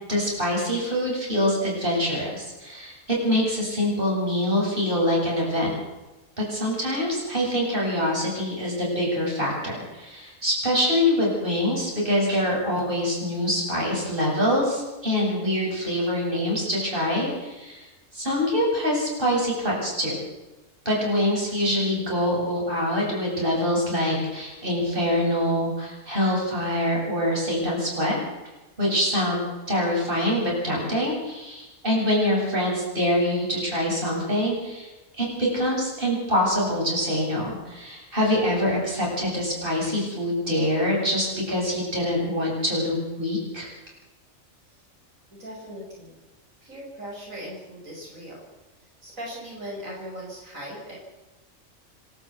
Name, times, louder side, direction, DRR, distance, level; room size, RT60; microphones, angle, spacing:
voice 1, 0.1-5.8 6.4-17.9 18.1-20.2 20.8-28.2 28.8-29.4 29.7-34.9 35.2-43.7, left 1 dB, 40° right, -3 dB, 8.1 m, -25 dB
voice 2, 45.3-46.1 46.6-48.4 49.0-50.9, equal, 85° right, -3 dB, 6.6 m, -38 dB
27.0 x 12.5 x 8.3 m, 1.1 s
omnidirectional pair, 1.4 m